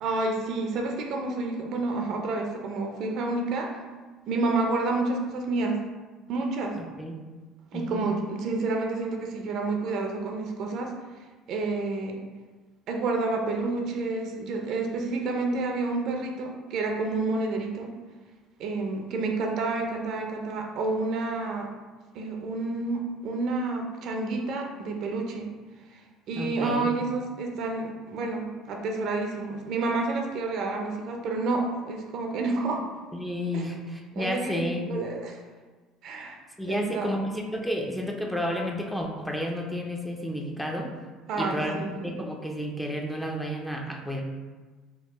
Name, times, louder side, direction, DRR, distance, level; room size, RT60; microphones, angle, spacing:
voice 1, 0.0-3.8 4.3-5.8 6.3-6.7 7.7-10.9 11.5-12.2 12.9-17.9 18.6-21.7 22.1-25.5 25.9-32.8 33.5-33.7 34.1-35.4 36.0-36.4 36.7-37.1 41.3-42.2, right 3 dB, 60° right, 2 dB, 0.5 m, -29 dB
voice 2, 6.8-7.1 7.7-8.1 26.3-26.9 33.1-34.9 36.6-40.9 41.3-44.2, equal, 5° left, 1 dB, 0.4 m, -31 dB
3.6 x 2.1 x 3.0 m, 1.3 s
supercardioid pair, 90°, 0 cm